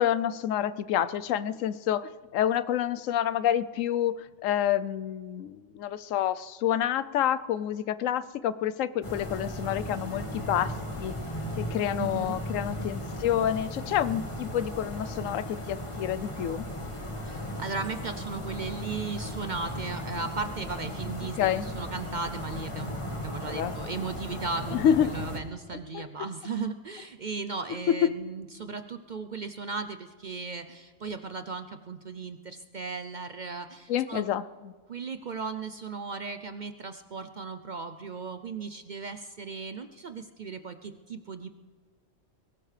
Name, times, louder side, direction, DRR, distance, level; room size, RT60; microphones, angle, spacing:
voice 1, 0.0-4.1 4.4-10.7 11.0-11.1 11.6-16.6 21.4-21.7 23.5-23.7 24.7-25.1 25.9-26.0 27.9-28.1 33.9-34.7, left 10 dB, 85° left, 15 dB, 1.0 m, -28 dB
sound 1, 9.0-25.4, equal, 25° left, 1.6 m, -36 dB
voice 2, 12.0-12.4 17.2-34.3 34.9-41.5, right 4 dB, 50° right, 9 dB, 0.6 m, -36 dB
22.5 x 18.0 x 3.3 m, 1.5 s
omnidirectional pair, 1.3 m